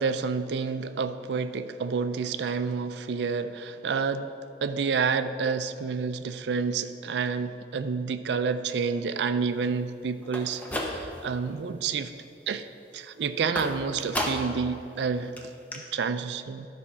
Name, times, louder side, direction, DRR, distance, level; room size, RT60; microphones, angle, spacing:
voice 1, 0.0-4.3 4.6-12.1 12.5-12.7 12.9-16.7, right 5 dB, 70° right, 10 dB, 0.4 m, -29 dB
sound 1, 10.2-11.4 11.8-12.3 13.6-14.7 15.0-15.1 15.4-15.5 15.7-15.8, left 1 dB, 10° left, 0.8 m, -33 dB
12.0 x 4.2 x 5.7 m, 2.8 s
head